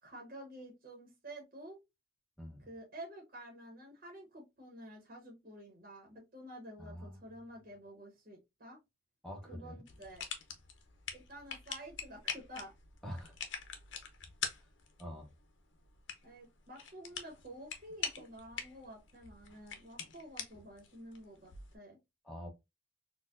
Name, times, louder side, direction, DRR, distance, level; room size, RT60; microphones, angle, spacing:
voice 1, 0.0-1.8 2.6-8.8 9.5-10.2 11.1-12.7 16.2-22.0, right 1 dB, 50° right, 1.0 m, -50 dB
voice 2, 6.8-7.2 9.2-9.8 13.0-13.3 15.0-15.3 22.2-22.5, equal, 5° left, 1.1 m, -45 dB
sound 1, 9.9-21.8, left 7 dB, 80° left, 0.7 m, -45 dB
4.3 x 2.3 x 2.4 m
head